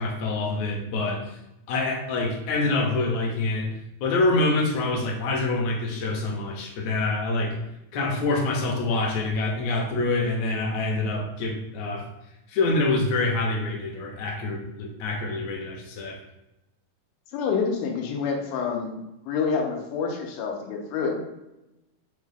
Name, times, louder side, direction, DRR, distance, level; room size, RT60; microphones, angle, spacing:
voice 1, 0.0-1.4 1.7-3.7 4.0-7.5 7.9-12.1 12.5-16.2, left 2 dB, 70° left, -1 dB, 1.9 m, -26 dB
voice 2, 17.3-19.0 19.3-21.2, left 5 dB, 85° left, 1 dB, 2.1 m, -27 dB
5.3 x 2.3 x 3.3 m, 0.90 s
omnidirectional pair, 3.6 m